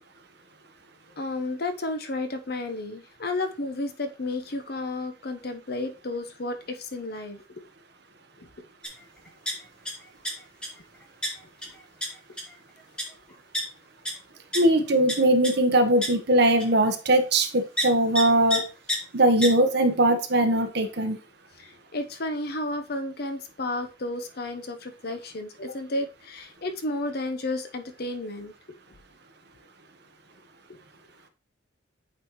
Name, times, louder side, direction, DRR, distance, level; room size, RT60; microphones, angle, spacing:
voice 1, 1.2-7.4 8.4-8.5 18.2-18.7 21.6-28.5, left 2 dB, 55° left, 7 dB, 0.8 m, -32 dB
sound 1, 8.8-9.0 9.3-9.9 10.3-10.7 11.2-11.3 11.6-11.7 12.0-12.1 12.4-12.5 13.0-13.1 13.5-13.6 14.1-14.2 14.5-14.6 15.1-15.2 15.4-15.5 16.0-16.1 16.6-16.7 17.8-17.9 18.2-18.3 18.5-18.6 18.9-19.0 19.4-19.5, equal, 5° left, 1.5 m, -27 dB
voice 2, 14.5-18.6 19.1-21.2, right 1 dB, 60° right, 6 dB, 1.1 m, -21 dB
8.6 x 4.1 x 3.0 m, 0.31 s
head